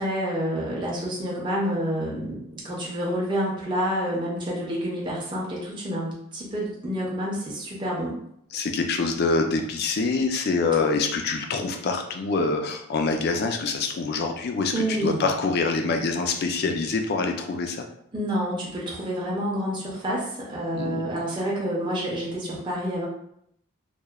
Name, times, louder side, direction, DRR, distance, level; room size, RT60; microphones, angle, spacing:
voice 1, 0.0-8.2 14.7-15.3 18.1-23.1, equal, 20° right, -5 dB, 0.5 m, -28 dB
voice 2, 8.5-17.8 20.7-21.1, left 4 dB, 50° left, 4 dB, 0.3 m, -25 dB
2.9 x 2.0 x 2.3 m, 0.72 s
head